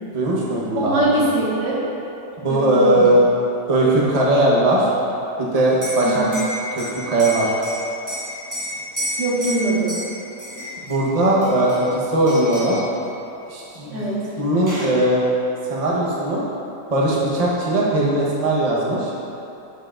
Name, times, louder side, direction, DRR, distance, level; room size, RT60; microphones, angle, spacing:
voice 1, 0.1-1.1 2.4-3.2 3.7-4.9 5.4-6.3 6.8-7.5 10.8-12.8 13.5-14.0 14.4-15.2 15.7-16.5 16.9-19.1, right 1 dB, 30° right, -5 dB, 0.8 m, -19 dB
voice 2, 0.8-1.8 2.5-3.0 6.0-6.3 9.2-9.9 13.9-14.2, right 2 dB, 75° right, -7 dB, 2.1 m, -22 dB
Liquid, 5.7-11.0 11.4-12.0 12.3-12.8 14.0-14.1 14.4-15.0, equal, 10° right, 1.1 m, -31 dB
10.5 x 5.5 x 2.5 m, 2.9 s
omnidirectional pair, 1.9 m